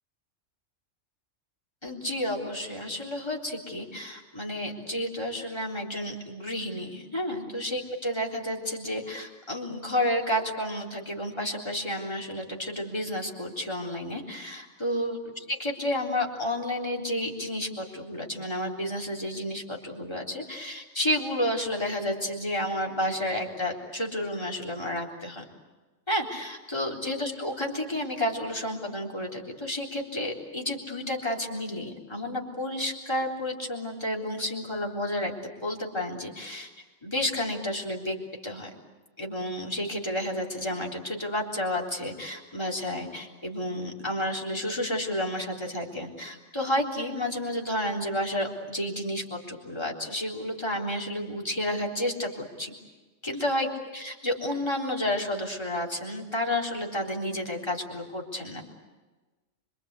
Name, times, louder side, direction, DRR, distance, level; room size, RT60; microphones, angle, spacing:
voice 1, 1.8-15.2 15.5-25.4 26.1-36.7 37.0-38.2 38.4-38.7 39.2-52.7 53.2-58.6, left 1 dB, 20° left, -1 dB, 3.8 m, -31 dB
26.5 x 24.0 x 8.3 m, 1.2 s
omnidirectional pair, 1.3 m